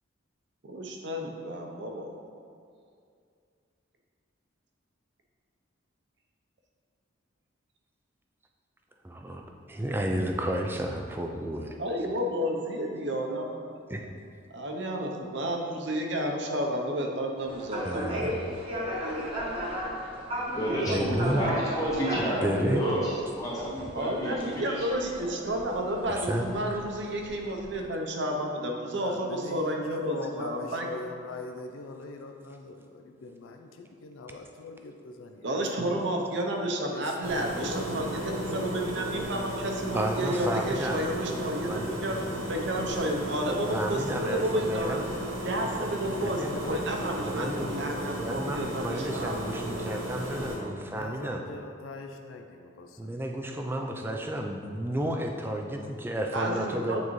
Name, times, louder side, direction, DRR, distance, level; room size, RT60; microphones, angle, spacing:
voice 1, 0.7-2.1 11.8-13.6 14.5-18.6 19.0-19.2 20.7-21.3 23.9-30.9 35.4-41.7 42.0-42.2 42.5-45.0 45.4-46.4 46.7-49.4 56.3-57.0, right 1 dB, 60° right, 1 dB, 0.7 m, -31 dB
voice 2, 9.0-11.8 13.9-14.1 17.8-18.3 20.9-21.5 22.2-22.8 26.1-26.8 39.9-41.0 41.7-42.4 43.7-45.1 46.2-46.5 47.2-47.7 48.1-51.4 53.0-57.0, right 1 dB, 10° right, 2 dB, 0.3 m, -32 dB
sound 1, 17.4-27.8, equal, 25° right, 0.9 m, -36 dB
voice 3, 20.5-25.3, equal, 15° left, -7 dB, 1.3 m, -31 dB
voice 4, 28.9-36.0 36.9-38.9 46.3-48.3 48.6-48.9 49.4-50.0 50.9-53.6, left 3 dB, 80° left, 4 dB, 0.4 m, -43 dB
sound 2, 37.2-50.6, right 1 dB, 85° right, 1.0 m, -35 dB
8.6 x 4.0 x 3.1 m, 2.4 s
head